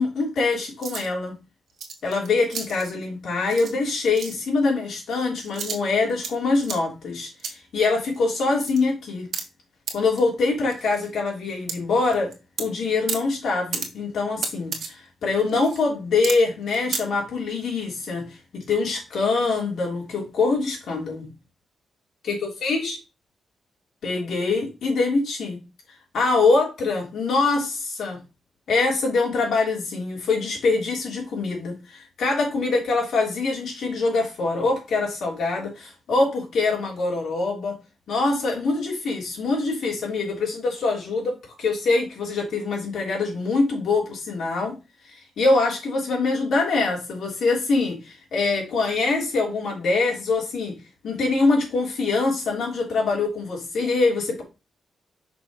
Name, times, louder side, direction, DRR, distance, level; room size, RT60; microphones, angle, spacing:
voice 1, 0.0-1.3 2.0-9.3 9.9-12.3 12.6-21.3 22.2-23.0 24.0-25.6 26.1-28.2 28.7-37.8 38.1-44.7 45.1-50.7 51.0-54.4, left 3 dB, 75° left, -2 dB, 3.4 m, -24 dB
sound 1, 0.8-1.1 1.7-2.9 3.5-3.8 4.1-4.4 5.4-6.4 6.6-6.8 7.4-7.5 8.1-8.2 8.4-8.8 9.3-9.4 9.9-10.0 10.2-10.3 10.6-11.1 11.7-11.8 12.1-12.6 13.1-13.2 13.7-13.9 14.4-14.9 15.3-15.8 16.2-16.3 16.6-17.0, right 6 dB, 70° right, 1.5 m, -32 dB
5.9 x 3.6 x 6.0 m, 0.29 s
cardioid pair, 115°, 0 cm